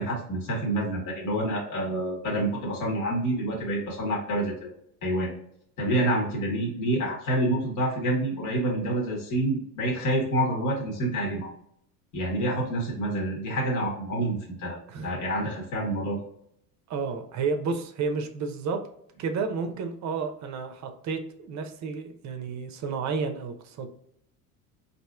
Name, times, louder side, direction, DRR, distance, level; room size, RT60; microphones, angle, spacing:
voice 1, 0.0-4.7 5.0-5.3 5.8-11.5 12.1-14.8 15.0-16.2, right 1 dB, 45° left, -1 dB, 1.2 m, -27 dB
voice 2, 16.9-18.8 19.2-23.9, right 5 dB, 40° right, 6 dB, 0.7 m, -31 dB
4.1 x 2.7 x 2.3 m, 0.71 s
hypercardioid pair, 75°, 44 cm